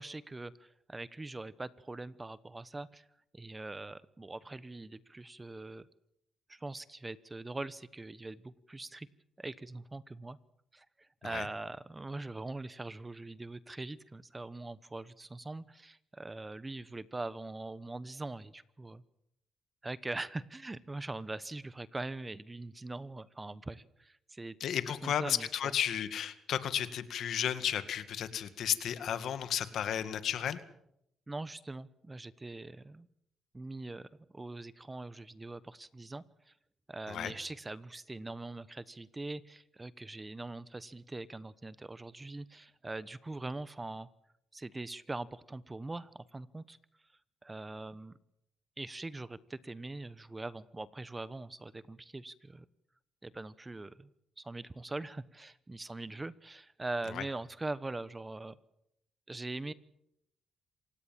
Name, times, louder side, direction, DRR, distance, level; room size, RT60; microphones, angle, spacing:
voice 1, 0.0-3.0 3.3-5.9 6.5-9.1 9.4-10.4 10.7-19.0 19.8-24.6 25.0-25.7 31.3-33.1 33.5-36.5 36.9-44.1 44.5-46.8 47.4-48.1 48.8-52.6 53.2-54.1 54.4-58.6 59.3-59.7, right 2 dB, 20° right, 17 dB, 1.0 m, -42 dB
voice 2, 24.6-30.6 37.1-37.3 57.1-57.2, left 9 dB, 70° left, 12 dB, 1.9 m, -33 dB
27.5 x 17.5 x 7.5 m, 0.76 s
cardioid pair, 90°, 0 cm